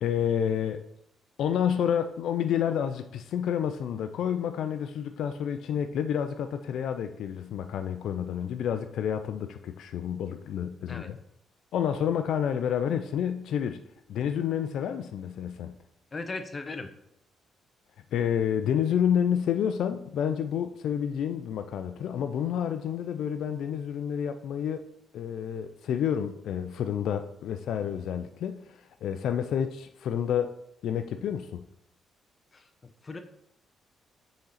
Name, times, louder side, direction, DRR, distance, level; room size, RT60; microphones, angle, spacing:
voice 1, 0.0-0.8 1.4-11.2 11.7-13.8 14.1-15.8 18.1-24.8 25.1-30.5 30.8-31.6, left 8 dB, 75° left, 9 dB, 0.3 m, -29 dB
voice 2, 16.1-16.9 32.5-32.6 33.0-33.2, left 3 dB, 30° left, 8 dB, 0.7 m, -37 dB
6.9 x 3.8 x 4.1 m, 0.75 s
cardioid pair, 90°, 0 cm